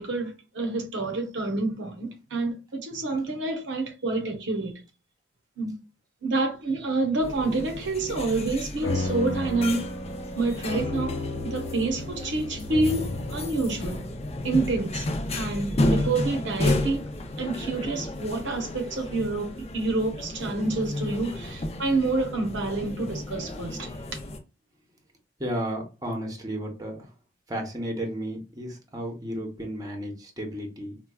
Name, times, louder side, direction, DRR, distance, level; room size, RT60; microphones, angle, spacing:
voice 1, 0.0-4.7 5.6-5.8 6.2-9.9 10.4-11.2 11.4-14.0 14.4-17.0 17.4-24.2, right 3 dB, 65° right, 0.8 m, -28 dB
sound 1, 7.2-24.4, left 1 dB, 35° left, 0.5 m, -32 dB
sound 2, 8.8-17.6, left 1 dB, 75° left, 1.2 m, -35 dB
voice 2, 25.4-27.1 27.5-31.0, equal, 20° right, 0.8 m, -33 dB
4.4 x 2.2 x 2.2 m
head